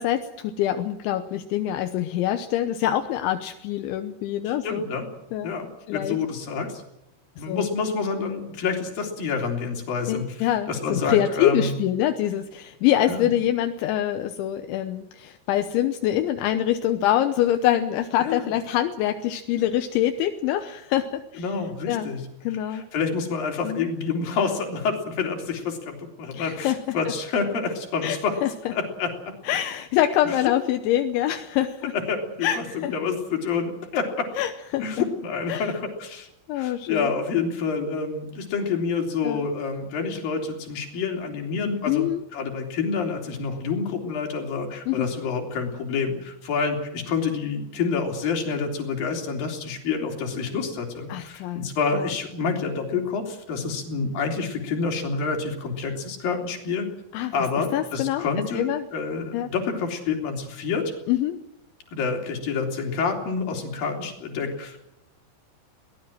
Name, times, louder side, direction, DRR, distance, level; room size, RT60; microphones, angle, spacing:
voice 1, 0.0-4.9 5.3-5.5 5.9-6.2 7.4-7.7 10.1-21.4 21.9-22.1 22.5-22.8 23.6-23.9 26.3-27.0 28.0-28.7 29.5-31.9 32.4-32.9 34.4-34.9 35.5-35.7 36.5-37.1 39.2-39.5 41.9-42.2 44.9-45.1 51.1-52.1 57.1-57.3 57.7-58.3 58.6-58.9 59.3-59.5 61.1-61.4, left 12 dB, 80° left, 7 dB, 3.3 m, -25 dB
voice 2, 4.4-5.1 5.4-6.8 7.4-11.7 13.1-13.3 18.2-18.5 21.4-22.2 22.5-28.4 28.7-29.3 30.2-30.4 31.9-34.3 34.8-36.3 36.5-42.1 42.3-56.9 57.3-60.9 61.9-64.8, left 5 dB, 50° left, 2 dB, 5.0 m, -28 dB
22.5 x 18.5 x 7.6 m, 0.84 s
omnidirectional pair, 5.4 m